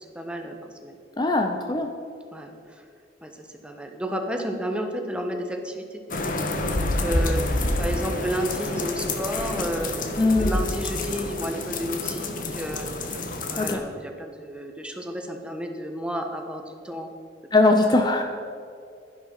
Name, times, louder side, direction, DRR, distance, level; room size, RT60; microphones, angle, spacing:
voice 1, 0.1-0.6 0.8-1.0 2.3-2.8 3.2-3.3 3.6-6.0 6.8-17.1 17.8-18.0, equal, 5° right, 3 dB, 1.2 m, -32 dB
voice 2, 1.2-1.9 10.2-10.6 13.5-13.8 17.5-18.2, left 2 dB, 25° left, 5 dB, 0.7 m, -21 dB
sound 1, 6.1-13.7, left 2 dB, 50° left, 1.2 m, -28 dB
12.0 x 10.5 x 5.7 m, 2.4 s
head